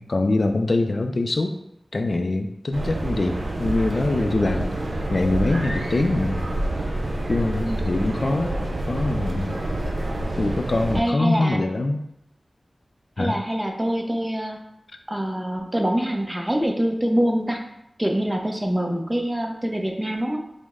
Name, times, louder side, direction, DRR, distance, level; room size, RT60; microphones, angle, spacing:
voice 1, 0.0-1.5 1.9-4.7 5.1-6.4 7.3-8.6 8.9-9.6 10.2-12.0 13.2-13.3, left 2 dB, 60° left, 6 dB, 0.3 m, -23 dB
sound 1, 2.7-11.0, right 1 dB, 80° right, 0.6 m, -27 dB
voice 2, 7.7-8.1 10.9-11.7 13.2-14.6 15.1-17.6 18.0-20.4, equal, 15° right, 2 dB, 0.6 m, -25 dB
5.1 x 2.1 x 3.6 m, 0.80 s
wide cardioid pair, 65°, 0 cm